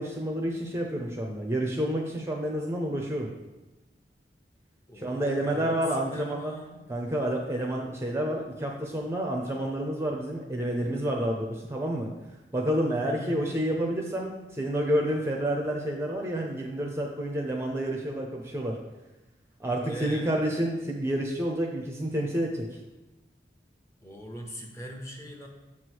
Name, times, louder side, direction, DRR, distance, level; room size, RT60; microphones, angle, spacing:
voice 1, 0.0-3.3 4.9-6.6 6.9-12.1 12.5-18.8 19.6-22.8, right 1 dB, 15° right, 0 dB, 0.6 m, -29 dB
voice 2, 4.9-6.9 13.0-13.5 19.9-20.4 24.0-25.5, equal, 15° left, 1 dB, 0.8 m, -41 dB
7.4 x 3.1 x 6.2 m, 1.1 s
head